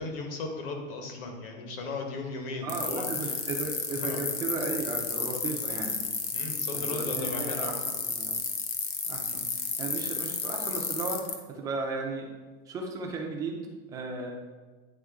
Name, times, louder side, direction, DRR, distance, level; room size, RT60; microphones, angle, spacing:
voice 1, 0.0-3.3 4.0-4.2 6.3-7.7 9.2-9.4, left 3 dB, 60° left, 2 dB, 1.3 m, -36 dB
voice 2, 2.6-6.0 6.7-8.4 9.1-12.3 12.7-13.6 13.9-14.3, right 3 dB, 10° right, 1 dB, 0.3 m, -35 dB
sound 1, 2.7-11.3, left 6 dB, 40° left, 0.6 m, -32 dB
8.9 x 3.5 x 3.6 m, 1.3 s
supercardioid pair, 170°, 31 cm